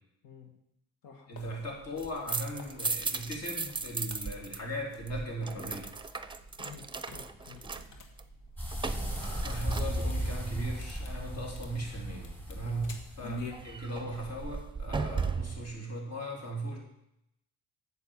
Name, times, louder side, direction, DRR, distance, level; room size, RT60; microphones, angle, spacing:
voice 1, 0.2-0.5 1.0-1.3 6.6-7.8 12.6-13.0, left 6 dB, 85° left, 2 dB, 1.9 m, -51 dB
sound 1, 1.3-13.5, left 4 dB, 65° left, 1.8 m, -51 dB
voice 2, 1.3-5.9 9.2-16.8, right 1 dB, 50° left, -1 dB, 3.6 m, -38 dB
sound 2, 1.8-4.6 4.8-10.4 13.5-15.7, right 4 dB, 15° right, 0.7 m, -37 dB
sound 3, 8.6-13.9, right 1 dB, 5° left, 2.8 m, -36 dB
8.8 x 6.9 x 7.1 m, 0.82 s
cardioid pair, 85°, 33 cm